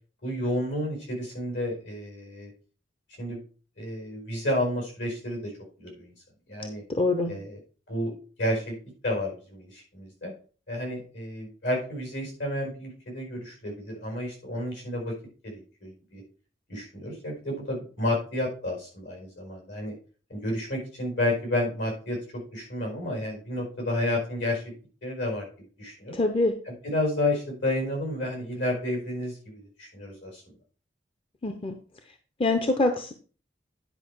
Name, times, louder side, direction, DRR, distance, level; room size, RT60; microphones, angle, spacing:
voice 1, 0.2-2.5 3.2-3.4 3.8-5.5 5.8-6.1 6.5-6.8 7.3-7.6 7.9-8.1 8.4-8.8 9.0-10.3 10.7-15.2 15.4-16.2 16.7-19.9 20.3-24.7 25.0-25.5 25.8-26.2 26.7-30.4, left 1 dB, 75° left, 1 dB, 4.9 m, -31 dB
voice 2, 6.9-7.3 26.1-26.5 31.4-31.8 32.4-33.1, left 2 dB, 30° left, 6 dB, 0.8 m, -24 dB
10.0 x 5.1 x 4.7 m, 0.39 s
head